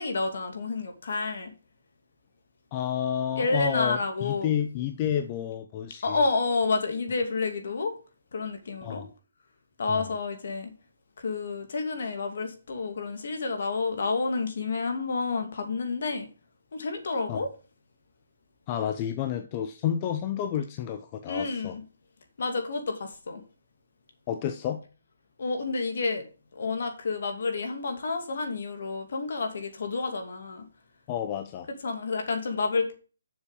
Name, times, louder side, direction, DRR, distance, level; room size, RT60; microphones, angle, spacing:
voice 1, 0.0-1.5 3.4-4.5 6.0-8.0 8.3-9.0 9.8-10.7 11.2-16.3 16.7-17.5 21.3-21.8 22.4-23.4 25.4-26.3 26.5-30.7 31.8-33.0, left 3 dB, 55° left, 2.6 m, -29 dB
voice 2, 2.7-6.2 8.8-9.1 9.9-10.1 17.3-17.4 18.7-21.8 24.3-24.8 31.1-31.7, left 10 dB, 20° left, 0.6 m, -30 dB
7.2 x 6.6 x 7.0 m
hypercardioid pair, 170°, 0 cm